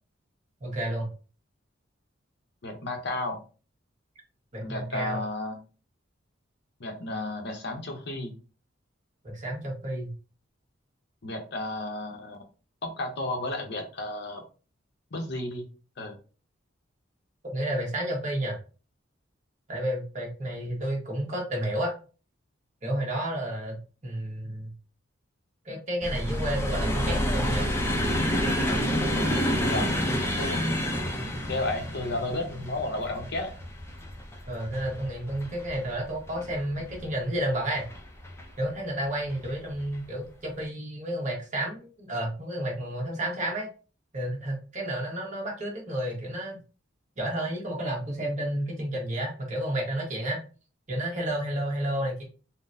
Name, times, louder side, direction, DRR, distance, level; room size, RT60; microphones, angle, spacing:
voice 1, 0.6-1.1 4.5-5.2 9.2-10.1 17.5-18.6 19.7-21.9 22.8-23.8 24.0-24.7 25.6-27.7 34.5-37.9 38.6-43.7 44.1-46.6 47.2-50.4 50.9-52.2, right 1 dB, 40° right, -1 dB, 1.1 m, -31 dB
voice 2, 2.6-3.4 4.6-5.6 6.8-8.3 11.2-12.4 12.8-14.4 15.1-15.7 16.0-16.2 29.7-29.9 30.4-30.8 31.5-33.5, left 2 dB, 55° left, 5 dB, 0.7 m, -32 dB
sound 1, 26.0-37.1 37.8-38.4 39.3-39.5 39.8-40.0, equal, 15° left, 0.5 m, -29 dB
3.8 x 2.1 x 2.6 m, 0.35 s
head